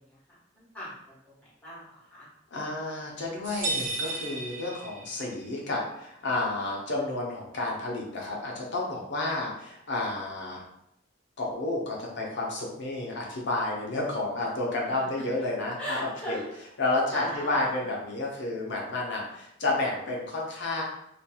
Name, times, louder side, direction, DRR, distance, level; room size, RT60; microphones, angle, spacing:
voice 1, 0.0-2.3 14.8-15.0 15.8-16.5 17.1-17.7, equal, 10° left, -9 dB, 1.2 m, -40 dB
voice 2, 2.5-10.6 11.4-16.4 16.8-20.8, left 2 dB, 65° left, -2 dB, 0.7 m, -31 dB
sound 1, 3.4-5.4, right 2 dB, 75° right, 0.6 m, -33 dB
2.8 x 2.5 x 2.3 m, 0.80 s
head